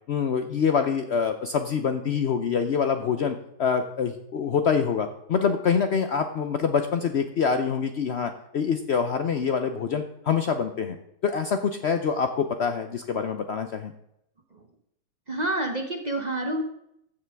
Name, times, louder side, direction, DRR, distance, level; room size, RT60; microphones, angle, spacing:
voice 1, 0.1-11.0 11.2-13.9, left 6 dB, 60° left, 7 dB, 0.7 m, -25 dB
voice 2, 15.3-16.6, right 1 dB, 35° right, 4 dB, 0.7 m, -28 dB
14.0 x 7.0 x 3.4 m, 0.79 s
omnidirectional pair, 1.7 m